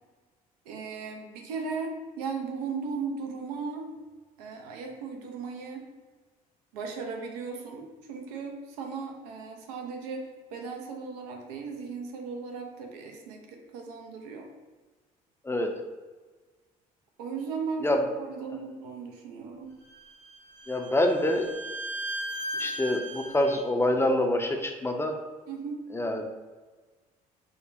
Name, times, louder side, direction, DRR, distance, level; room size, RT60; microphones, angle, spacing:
voice 1, 0.7-3.9 4.4-5.9 6.7-14.5 17.2-17.9 18.3-19.7 25.5-25.8, right 5 dB, 80° right, 2 dB, 0.5 m, -37 dB
Bowed string instrument, 19.8-23.6, right 1 dB, 65° right, 1.5 m, -37 dB
voice 2, 20.7-21.5 22.5-25.2 25.9-26.3, left 1 dB, 10° left, 4 dB, 0.5 m, -26 dB
4.9 x 2.1 x 2.6 m, 1.3 s
hypercardioid pair, 55°, 20 cm